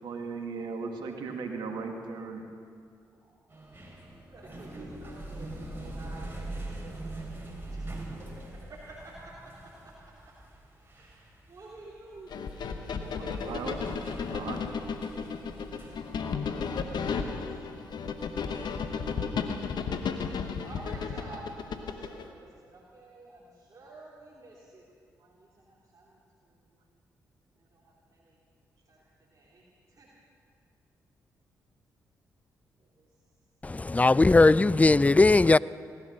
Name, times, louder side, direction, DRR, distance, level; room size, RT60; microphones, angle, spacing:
voice 1, 0.0-2.4 13.2-13.8 14.3-14.8, right 4 dB, 70° right, 2.0 m, -37 dB
voice 2, 3.0-3.4 4.3-7.2 7.7-9.9 10.8-12.4 12.9-13.8 17.4-18.2 20.6-24.8 25.1-26.7 27.6-28.4 28.9-29.0 29.3-29.6 29.9-30.1 32.8-33.1, right 2 dB, 45° right, 3.1 m, -50 dB
sound 1, 3.5-16.2, right 2 dB, 25° right, 4.6 m, -43 dB
sound 2, 12.3-22.3, left 5 dB, 65° left, 1.1 m, -34 dB
voice 3, 33.6-35.6, left 3 dB, 20° left, 0.4 m, -19 dB
18.0 x 12.5 x 6.5 m
hypercardioid pair, 45°, 8 cm